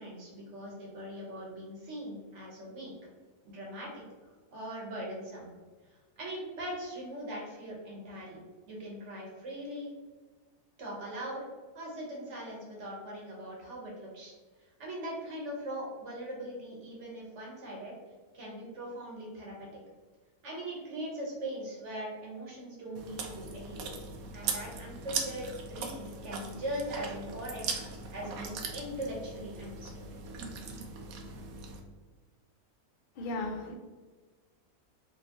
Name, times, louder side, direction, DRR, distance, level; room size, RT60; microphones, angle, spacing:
voice 1, 0.0-2.9 3.4-3.9 4.5-5.5 5.9-9.9 10.8-11.4 11.7-14.3 14.8-17.9 18.3-19.7 20.4-23.9 24.3-30.0, right 1 dB, 55° right, -3 dB, 1.2 m, -40 dB
Chewing mastication, 22.9-31.8, right 4 dB, 80° right, 1.0 m, -39 dB
voice 2, 33.2-33.8, left 2 dB, 75° left, 3 dB, 0.4 m, -35 dB
3.7 x 2.7 x 2.9 m, 1.3 s
omnidirectional pair, 1.5 m